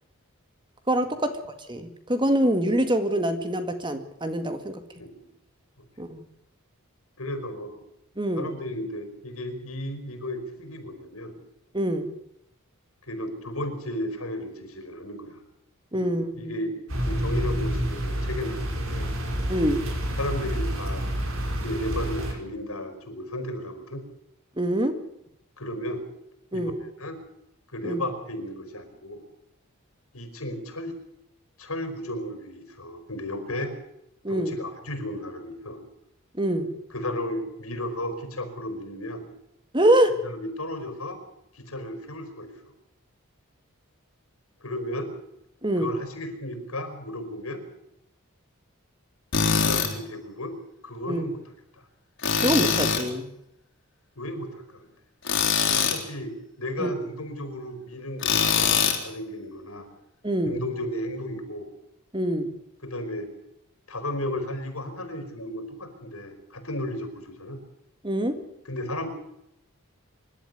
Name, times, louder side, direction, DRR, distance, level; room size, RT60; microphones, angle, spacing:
voice 1, 0.9-1.3 1.7-4.8 6.0-6.2 8.2-8.5 11.7-12.0 15.9-16.3 19.5-19.8 24.6-25.0 26.5-26.7 27.8-28.0 34.2-34.5 36.4-36.7 39.7-40.2 45.6-45.9 51.1-51.3 52.4-53.3 56.8-56.9 60.2-60.5 62.1-62.5 68.0-68.4, right 1 dB, 20° right, 9 dB, 1.9 m, -24 dB
voice 2, 7.2-7.8 8.4-11.4 13.1-15.4 15.9-16.7 17.0-19.1 20.2-21.0 21.6-24.0 25.6-26.0 26.5-26.7 27.0-27.2 27.7-29.2 30.1-30.9 31.6-33.7 34.3-35.8 36.9-39.3 40.2-41.2 41.5-42.7 44.6-45.1 45.8-47.6 49.5-50.5 50.8-51.4 54.2-54.9 55.7-56.3 56.6-59.9 60.4-61.7 62.8-63.3 63.9-67.6 68.6-69.1, left 1 dB, 80° left, 8 dB, 4.9 m, -34 dB
sound 1, 16.9-22.3, equal, 65° right, 5.1 m, -28 dB
Tools, 49.3-49.9 52.2-53.1 55.2-56.0 58.2-59.0, left 6 dB, 60° left, 3.9 m, -22 dB
26.0 x 12.5 x 9.5 m, 0.80 s
head